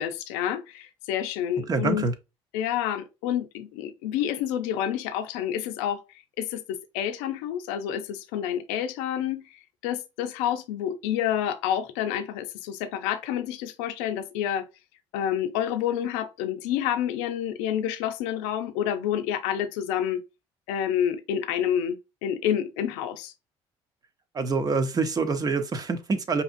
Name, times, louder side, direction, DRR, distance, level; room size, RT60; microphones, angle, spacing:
voice 1, 0.0-2.1 2.5-6.0 6.4-9.6 9.8-14.7 15.1-20.2 20.7-23.3, left 10 dB, 90° left, 0.6 m, -28 dB
voice 2, 1.7-2.1 24.3-26.4, right 4 dB, 35° right, 0.8 m, -26 dB
5.1 x 2.9 x 2.6 m
supercardioid pair, 90°, 11 cm